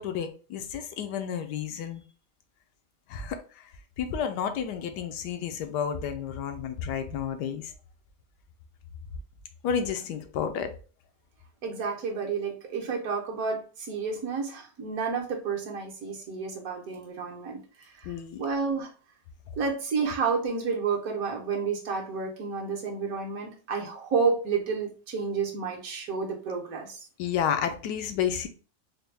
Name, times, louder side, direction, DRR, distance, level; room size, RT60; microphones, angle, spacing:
voice 1, 0.0-2.0 3.1-3.7 4.0-7.7 9.6-10.7 18.0-18.4 27.2-28.5, left 8 dB, 85° left, 7 dB, 1.2 m, -31 dB
voice 2, 11.6-18.1 18.4-18.9 19.6-27.0, right 5 dB, 65° right, 0 dB, 1.3 m, -30 dB
4.3 x 2.2 x 3.3 m, 0.37 s
omnidirectional pair, 1.8 m